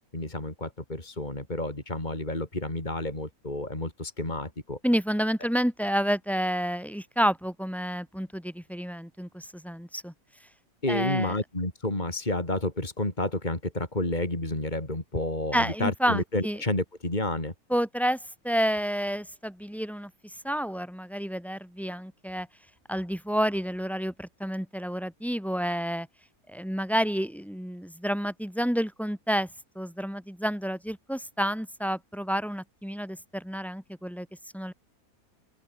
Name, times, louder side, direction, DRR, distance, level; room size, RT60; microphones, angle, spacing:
voice 1, 0.1-4.8 10.8-17.5, left 1 dB, 30° left, 4.6 m, -30 dB
voice 2, 4.8-10.1 10.9-11.4 15.5-16.6 17.7-18.2 18.4-22.5 22.9-26.1 26.5-29.5 29.7-34.3 34.5-34.7, equal, ahead, 4.5 m, -29 dB
open air
omnidirectional pair, 1.6 m